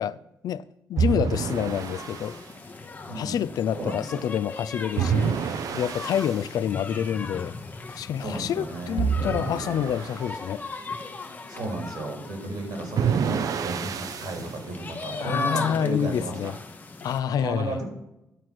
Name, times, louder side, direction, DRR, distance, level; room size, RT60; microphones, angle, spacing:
voice 1, 0.0-2.4 3.1-7.5 7.9-10.6 15.1-16.6 17.0-17.8, left 9 dB, 85° left, 0.4 m, -28 dB
sound 1, 1.0-2.4 5.0-6.5 9.0-10.3 13.0-14.5, right 7 dB, 65° right, 0.6 m, -27 dB
sound 2, 1.3-17.2, left 3 dB, 25° left, 0.8 m, -38 dB
voice 2, 3.1-4.3 6.0-6.2 8.2-9.0 11.5-16.5 17.4-17.9, right 2 dB, 80° right, 3.0 m, -34 dB
10.5 x 4.7 x 5.9 m
wide cardioid pair, 155°, 6 cm